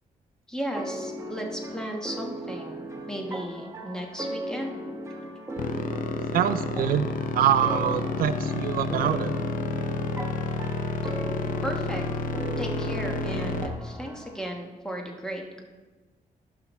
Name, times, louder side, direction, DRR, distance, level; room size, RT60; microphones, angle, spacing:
voice 1, 0.5-4.8 11.6-12.0 12.6-15.6, equal, 5° left, 1 dB, 1.3 m, -35 dB
sound 1, 0.7-14.5, right 1 dB, 20° right, 1.1 m, -37 dB
sound 2, 5.6-13.7, left 4 dB, 65° left, 0.7 m, -30 dB
voice 2, 6.3-7.1 7.3-9.3, right 10 dB, 80° right, 12 dB, 0.4 m, -24 dB
14.0 x 5.7 x 3.1 m, 1.3 s
cardioid pair, 110°, 15 cm